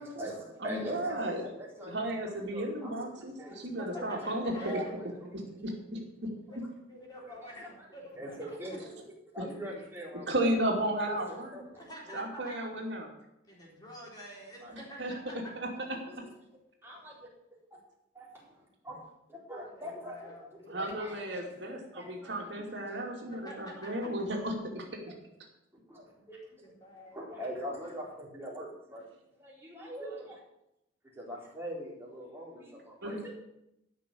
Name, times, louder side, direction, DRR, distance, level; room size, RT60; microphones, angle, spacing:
voice 1, 0.0-2.0 2.2-3.7 4.0-4.1 4.6-5.5 7.2-7.7 8.2-9.0 9.3-10.5 11.1-11.6 12.1-12.2 14.6-14.7 16.1-16.3 16.8-17.3 17.7-17.8 18.1-23.3 25.1-25.2 25.9-26.6 27.1-29.1 29.4-30.4 31.1-33.3, equal, 15° right, -4 dB, 4.2 m, -43 dB
voice 2, 0.6-1.4 1.8-4.5 5.6-6.0 10.3-11.6 12.1-13.1 15.0-15.1 15.6-15.7 20.7-24.8 33.0-33.2, right 1 dB, 70° right, 0 dB, 2.6 m, -34 dB
voice 3, 3.8-4.8 6.5-8.6 11.8-12.7 13.5-15.5 19.6-21.2 23.3-23.9 26.6-27.2 27.8-28.1, equal, 20° left, -3 dB, 3.7 m, -48 dB
13.5 x 6.3 x 8.6 m, 0.82 s
head